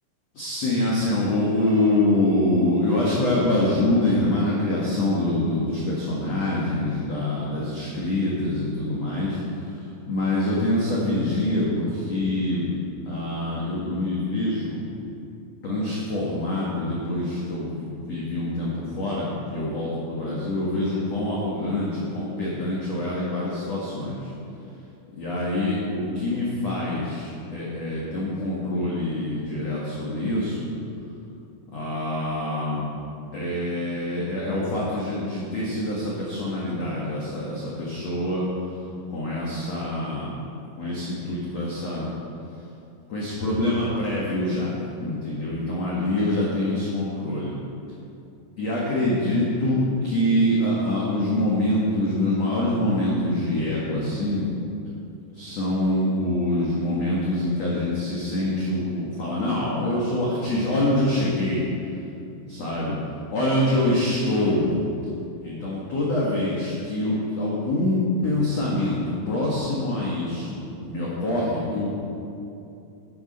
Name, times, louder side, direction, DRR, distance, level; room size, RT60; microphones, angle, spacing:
voice 1, 0.3-12.8 13.0-14.8 15.6-24.3 25.2-30.6 31.7-32.8 33.3-38.5 39.1-40.4 40.8-42.1 43.1-47.5 48.6-49.8 50.0-54.5 55.3-61.6 62.4-63.0 63.3-64.7 65.4-71.9, left 1 dB, 75° left, -6 dB, 1.5 m, -25 dB
10.5 x 9.5 x 5.6 m, 2.7 s
omnidirectional pair, 5.7 m